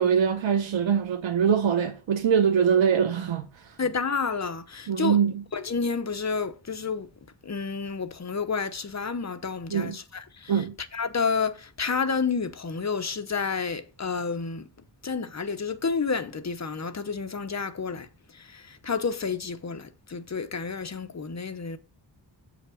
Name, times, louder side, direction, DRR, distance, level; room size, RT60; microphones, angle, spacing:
voice 1, 0.0-3.7 4.9-5.4 9.7-10.0 10.5-10.7, right 7 dB, 85° right, 0.8 m, -23 dB
voice 2, 3.8-5.2 5.5-7.1 7.4-10.5 10.9-14.7 15.0-18.1 18.5-21.8, left 5 dB, 35° left, 0.9 m, -30 dB
7.9 x 5.1 x 5.0 m
wide cardioid pair, 125°, 45 cm